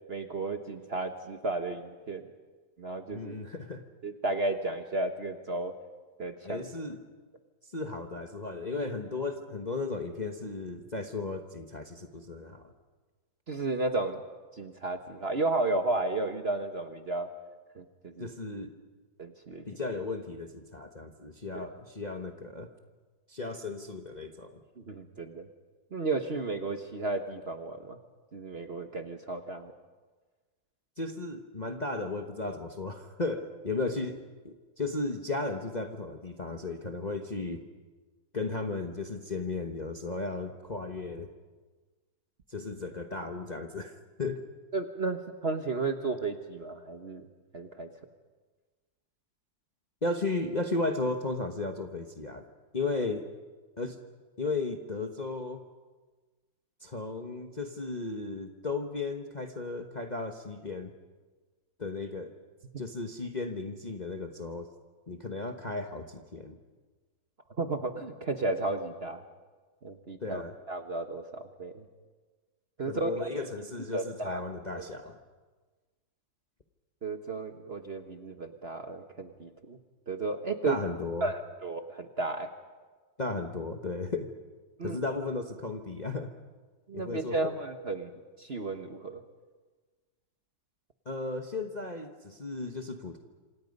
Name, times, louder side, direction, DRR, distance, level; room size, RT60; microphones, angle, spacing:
voice 1, 0.1-2.3 2.8-3.3 4.0-5.7 6.2-6.6 13.5-14.2 14.5-17.3 17.7-18.3 19.2-19.7 21.5-21.7 24.8-25.5 25.9-28.0 28.3-29.7 44.7-47.3 47.5-47.9 67.6-69.2 69.8-71.8 72.8-73.4 73.9-74.4 74.8-74.9 77.0-79.8 80.1-80.8 81.2-82.5 84.8-85.0 86.9-88.1 88.4-89.2, right 3 dB, 40° right, 6 dB, 1.2 m, -33 dB
voice 2, 3.1-3.8 6.4-7.0 7.7-12.7 18.2-18.7 19.7-22.7 23.3-24.6 31.0-37.6 38.3-41.3 42.5-44.4 50.0-52.4 52.7-53.3 53.8-54.0 54.4-55.6 56.8-60.9 61.8-62.3 62.8-64.7 65.1-66.6 70.2-70.6 72.8-75.2 80.6-81.3 83.2-84.3 84.8-86.3 86.9-87.4 91.1-93.2, left 3 dB, 30° left, 4 dB, 1.0 m, -35 dB
27.0 x 26.5 x 5.4 m, 1.3 s
omnidirectional pair, 2.0 m